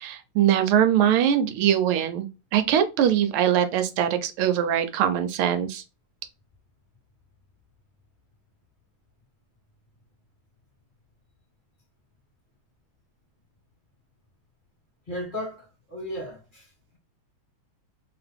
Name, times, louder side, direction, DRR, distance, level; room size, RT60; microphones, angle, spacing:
voice 1, 0.0-5.8, right 10 dB, 80° right, 1.5 m, -22 dB
voice 2, 15.1-17.0, equal, 25° left, 1.8 m, -36 dB
3.5 x 2.9 x 3.3 m
omnidirectional pair, 2.4 m